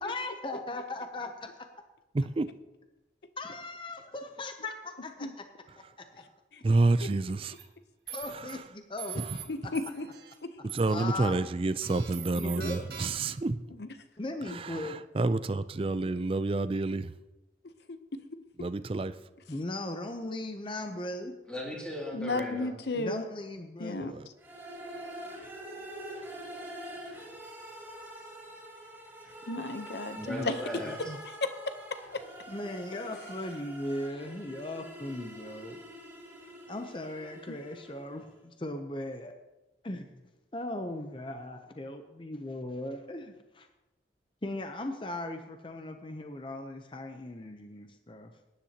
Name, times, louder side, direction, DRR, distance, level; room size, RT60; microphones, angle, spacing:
voice 1, 0.0-1.5 3.4-5.4 8.1-9.2 10.9-11.4 12.3-12.8 14.2-15.0 19.5-21.3 23.0-24.1 30.3-30.5 31.1-31.2 32.5-35.8 36.7-38.2 38.6-39.3 39.8-40.0 40.5-43.3 44.4-48.3, left 1 dB, 30° left, 0.6 m, -38 dB
voice 2, 2.1-2.5 6.6-7.6 8.2-8.7 9.1-9.5 10.7-13.6 14.4-17.1 18.6-19.1 24.0-24.3, right 3 dB, 30° right, 0.4 m, -29 dB
sound 1, 7.5-7.6 8.1-8.5 9.0-9.4 9.8-10.4 10.7-11.3 11.8-13.4, right 9 dB, 60° right, 1.7 m, -43 dB
voice 3, 9.5-10.1 10.4-10.5 13.8-13.9 17.9-18.0 22.1-23.2 23.8-24.1 29.5-30.5 32.9-33.3 37.5-37.6, left 2 dB, 70° left, 0.8 m, -34 dB
voice 4, 21.5-22.8 30.1-30.9, left 1 dB, 5° left, 2.6 m, -37 dB
sound 2, 24.4-38.2, right 1 dB, 10° right, 3.2 m, -45 dB
20.0 x 10.0 x 2.9 m
head